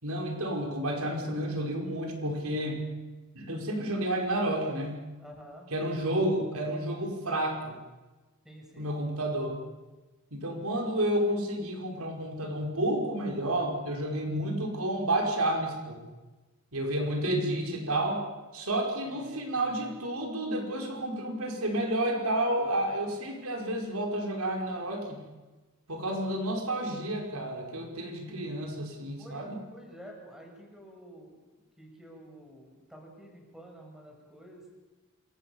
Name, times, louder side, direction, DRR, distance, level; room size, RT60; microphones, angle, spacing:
voice 1, 0.0-2.8 3.3-5.0 5.7-7.8 8.8-9.6 10.3-16.0 16.7-18.3 18.5-25.2 25.9-29.6, right 1 dB, 80° right, 2 dB, 5.2 m, -30 dB
voice 2, 5.2-6.2 8.4-8.9 14.2-14.6 19.1-19.9 26.0-26.3 28.2-28.6 29.2-31.4 31.8-34.6, equal, 5° right, 0 dB, 7.4 m, -50 dB
28.0 x 25.5 x 7.2 m, 1.2 s
head